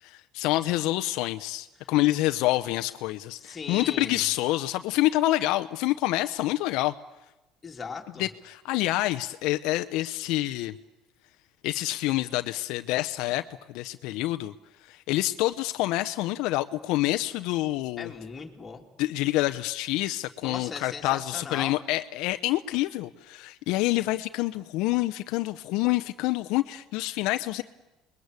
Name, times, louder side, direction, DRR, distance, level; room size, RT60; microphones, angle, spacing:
voice 1, 0.0-6.9 8.2-10.8 11.6-13.4 13.7-14.5 14.8-18.1 19.0-27.6, left 17 dB, 75° left, 9 dB, 0.8 m, -27 dB
voice 2, 3.3-4.2 7.6-8.3 18.0-18.9 20.4-21.8, left 5 dB, 20° left, 1 dB, 3.0 m, -38 dB
28.0 x 21.5 x 8.4 m, 1.0 s
cardioid pair, 145°, 0 cm